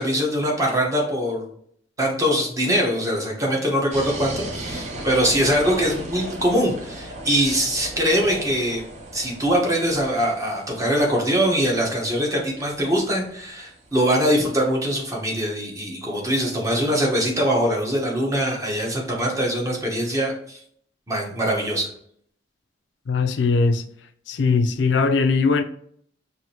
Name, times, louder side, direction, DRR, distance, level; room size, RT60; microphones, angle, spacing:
voice 1, 0.0-1.5 2.0-8.8 9.1-20.6 21.1-21.9, equal, 20° right, 1.0 m, -22 dB
sound 1, 3.9-14.6, right 1 dB, 40° right, 0.6 m, -37 dB
voice 2, 23.1-23.8 24.3-25.6, left 4 dB, 75° left, 0.4 m, -20 dB
4.9 x 2.7 x 2.8 m
head